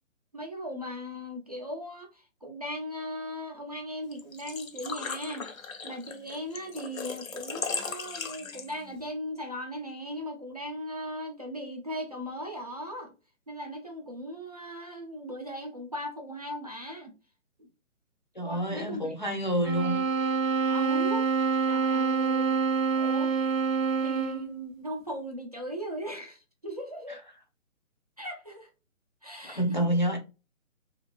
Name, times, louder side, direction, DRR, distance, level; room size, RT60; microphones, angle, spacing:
voice 1, 0.3-5.5 5.8-13.1 13.5-17.1 17.6-17.7 18.4-19.1 20.7-21.3 21.7-22.6 22.9-23.3 24.0-27.2 28.2-28.7 29.2-29.9, equal, 30° right, 0.4 m, -38 dB
Engine / Trickle dribble / Fill (with liquid), 4.1-9.0, left 5 dB, 80° left, 0.8 m, -37 dB
voice 2, 18.4-20.0 29.4-30.2, right 1 dB, 35° left, 0.4 m, -28 dB
sound 1, 19.6-24.5, right 5 dB, 75° right, 0.6 m, -26 dB
2.6 x 2.4 x 2.9 m
figure-of-eight pair, 150°, 40 cm